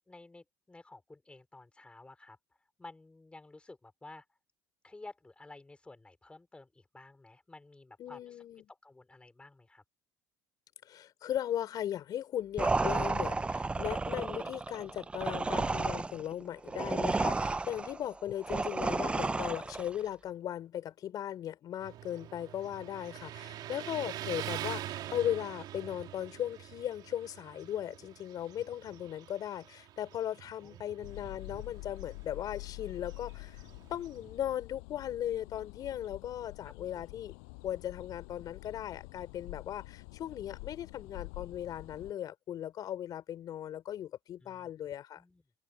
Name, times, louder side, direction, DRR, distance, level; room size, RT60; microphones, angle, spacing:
voice 1, 0.1-2.4 2.8-4.2 4.8-9.8 23.6-23.9 30.6-30.9 36.6-37.0 44.4-44.7 45.2-45.4, left 2 dB, 15° left, 4.7 m, -53 dB
voice 2, 8.0-8.6 10.8-33.6 33.9-37.3 37.6-45.2, left 11 dB, 50° left, 4.8 m, -38 dB
sound 1, 12.6-20.0, right 3 dB, 15° right, 0.5 m, -32 dB
Motorcycle, 21.8-34.4, right 13 dB, 55° right, 2.7 m, -45 dB
sound 2, 31.0-42.1, left 39 dB, 80° left, 7.6 m, -47 dB
supercardioid pair, 95°, 8 cm